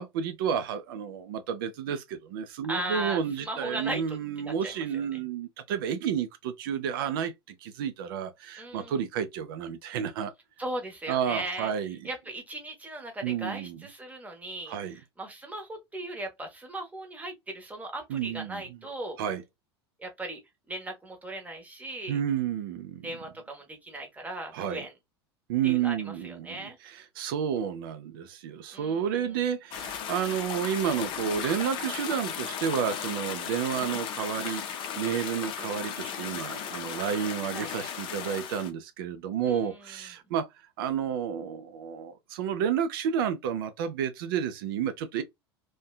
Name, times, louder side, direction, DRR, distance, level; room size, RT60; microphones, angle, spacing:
voice 1, 0.0-7.3 7.6-10.3 11.1-12.1 13.2-13.9 14.7-15.0 18.1-18.8 19.2-19.4 22.1-23.1 24.5-24.8 25.5-34.6 35.0-40.5 40.8-45.2, right 8 dB, 55° right, 0.4 m, -31 dB
voice 2, 2.7-4.2 4.4-4.8 8.6-9.0 10.6-11.7 12.0-14.8 15.2-19.2 20.0-20.4 20.7-22.2 23.0-24.9 25.6-26.8 28.7-29.3 37.5-37.7 39.4-39.8, right 1 dB, 10° right, 1.0 m, -37 dB
sound 1, 29.7-38.7, left 8 dB, 40° left, 0.5 m, -36 dB
2.6 x 2.2 x 2.2 m
figure-of-eight pair, 80°, 14 cm